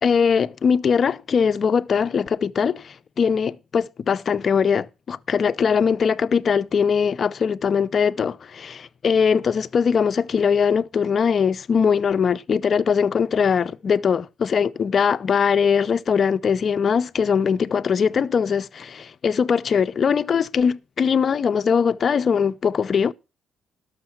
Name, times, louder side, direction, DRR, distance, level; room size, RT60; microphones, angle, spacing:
voice 1, 0.0-23.1, left 6 dB, 50° left, 0.5 m, -21 dB
12.5 x 6.5 x 5.9 m
cardioid pair, 90°, 0 cm